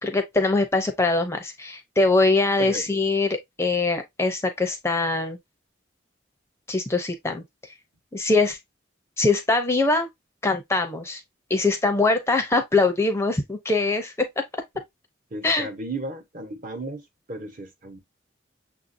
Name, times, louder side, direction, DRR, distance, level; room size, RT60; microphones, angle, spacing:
voice 1, 0.0-5.4 6.7-7.4 8.1-8.6 9.2-10.1 10.4-11.2 11.5-14.4 15.4-15.7, left 3 dB, 15° left, 0.5 m, -22 dB
voice 2, 15.3-17.0 17.3-18.0, right 2 dB, 45° right, 0.9 m, -34 dB
6.5 x 2.6 x 2.5 m
head